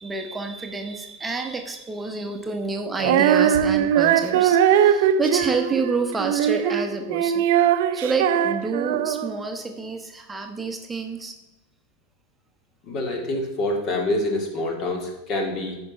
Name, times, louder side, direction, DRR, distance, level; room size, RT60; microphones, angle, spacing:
voice 1, 0.0-7.5 7.9-11.4, right 3 dB, 15° right, 4 dB, 0.9 m, -28 dB
Female singing, 3.0-9.4, right 9 dB, 65° right, 0.5 m, -20 dB
voice 2, 12.8-15.8, left 1 dB, 45° left, 2 dB, 2.4 m, -26 dB
9.7 x 5.4 x 5.3 m, 0.97 s
hypercardioid pair, 90°, 0 cm